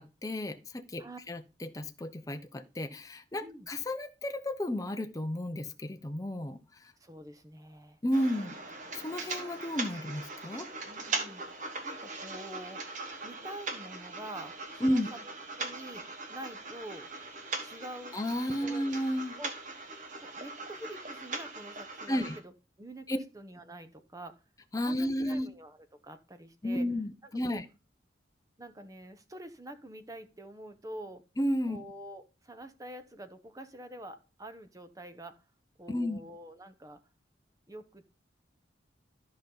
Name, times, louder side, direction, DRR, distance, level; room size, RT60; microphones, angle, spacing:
voice 1, 0.0-6.9 8.0-8.6 8.9-10.7 14.8-15.1 18.1-19.3 22.1-22.4 23.1-23.2 24.7-25.5 26.6-27.7 31.4-31.8 35.9-36.2, equal, 20° left, 7 dB, 0.6 m, -32 dB
voice 2, 7.0-8.0 10.9-12.8 13.2-16.0 16.3-17.1 17.6-18.2 18.6-19.0 19.3-19.5 20.2-22.5 22.8-24.4 24.7-25.8 26.0-26.9 27.2-27.6 28.6-31.2 31.7-35.4 35.8-37.0 37.7-38.1, right 1 dB, 20° right, 9 dB, 0.7 m, -46 dB
sound 1, 8.1-22.4, right 3 dB, 40° right, 1.4 m, -40 dB
13.0 x 5.2 x 3.9 m, 0.32 s
head